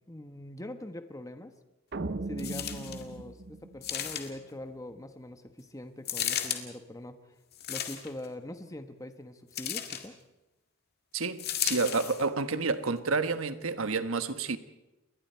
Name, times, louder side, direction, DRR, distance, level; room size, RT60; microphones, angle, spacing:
voice 1, 0.1-1.5 2.3-7.2 7.7-10.2, left 1 dB, 15° left, 1.1 m, -43 dB
sound 1, 1.9-4.4, right 2 dB, 50° right, 0.8 m, -38 dB
sound 2, 2.4-3.0 3.8-4.5 6.0-6.6 7.5-8.3 9.5-10.1 11.4-12.2 13.0-13.1, left 10 dB, 50° left, 2.0 m, -34 dB
voice 2, 11.1-14.6, right 4 dB, 75° right, 1.2 m, -29 dB
29.5 x 22.0 x 4.5 m
head